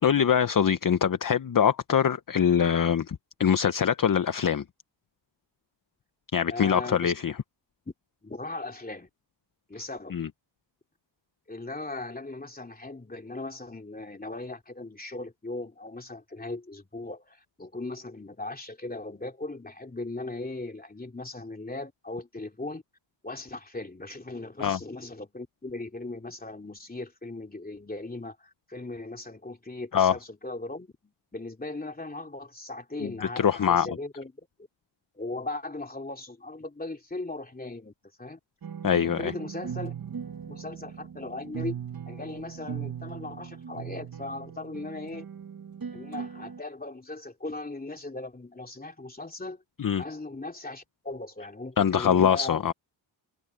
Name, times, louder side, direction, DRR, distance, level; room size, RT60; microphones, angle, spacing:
voice 1, 0.0-4.6 6.3-7.3 10.1-10.3 24.6-24.8 29.9-30.1 33.0-33.9 38.8-39.3 49.8-50.0 51.8-52.7, left 8 dB, 45° left, 0.8 m, -23 dB
voice 2, 6.5-7.1 8.2-9.1 9.7-10.2 11.5-22.8 23.2-34.3 35.1-37.9 38.2-38.4 38.9-39.9 40.5-41.8 42.1-45.2 45.9-49.6 50.0-52.7, left 2 dB, 20° left, 2.9 m, -38 dB
sound 1, 38.6-46.6, right 8 dB, 50° right, 1.3 m, -39 dB
wide cardioid pair, 110°, 46 cm